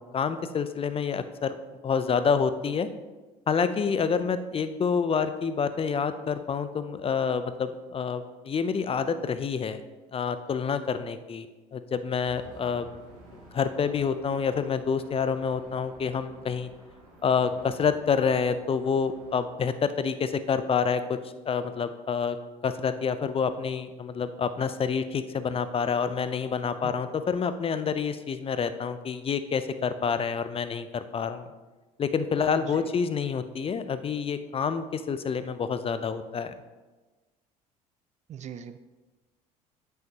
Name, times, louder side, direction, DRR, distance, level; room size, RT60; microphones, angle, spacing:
voice 1, 0.0-1.6 1.8-2.9 3.5-9.8 10.1-11.5 11.7-12.9 13.3-16.7 17.2-21.2 21.5-22.4 22.6-31.5 32.0-36.5, left 6 dB, 30° left, 11 dB, 0.5 m, -28 dB
sound 1, 12.2-19.4, right 1 dB, 85° right, 2.1 m, -52 dB
voice 2, 38.3-38.8, right 8 dB, 35° right, 12 dB, 0.4 m, -40 dB
9.0 x 5.6 x 2.9 m, 1.2 s
hypercardioid pair, 60°, 19 cm